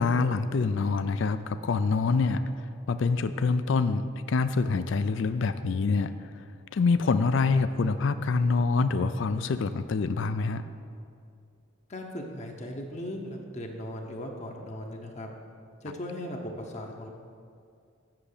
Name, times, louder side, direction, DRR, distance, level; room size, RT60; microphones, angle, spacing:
voice 1, 0.0-2.4 2.9-6.4 6.7-10.6, left 4 dB, 60° left, 12 dB, 0.4 m, -26 dB
voice 2, 11.9-15.3 15.8-17.1, left 1 dB, 30° left, 1 dB, 0.8 m, -38 dB
7.7 x 7.0 x 6.6 m, 2.4 s
head